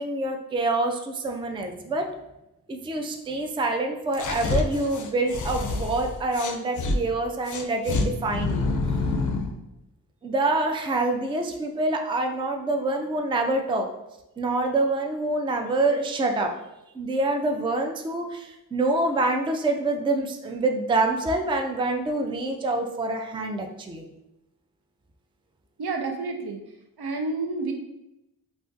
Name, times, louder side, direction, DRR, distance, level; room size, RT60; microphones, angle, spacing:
voice 1, 0.0-2.1 2.7-8.7 10.2-13.9 14.4-16.5 16.9-24.1, right 2 dB, 15° right, 3 dB, 0.3 m, -26 dB
sound 1, 4.1-7.0 7.5-9.5, left 3 dB, 50° left, 0.4 m, -27 dB
voice 2, 25.8-26.6 27.0-27.7, right 3 dB, 80° right, 3 dB, 0.6 m, -29 dB
2.4 x 2.4 x 3.8 m, 0.91 s
wide cardioid pair, 65°, 38 cm